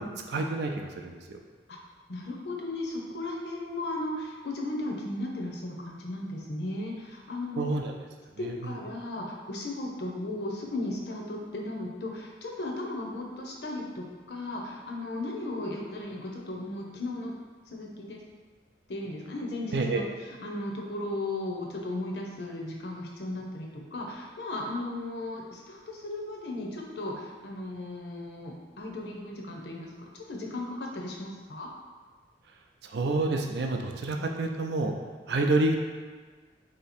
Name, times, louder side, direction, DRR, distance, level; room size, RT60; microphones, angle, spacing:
voice 1, 0.3-1.4 7.6-7.9 8.4-8.7 19.7-20.0 32.9-34.9 35.3-35.8, right 2 dB, 65° right, 3 dB, 0.4 m, -28 dB
voice 2, 2.1-7.7 8.4-17.3 17.7-18.2 18.9-31.7, left 2 dB, 65° left, 0 dB, 0.7 m, -36 dB
3.2 x 2.9 x 4.2 m, 1.5 s
head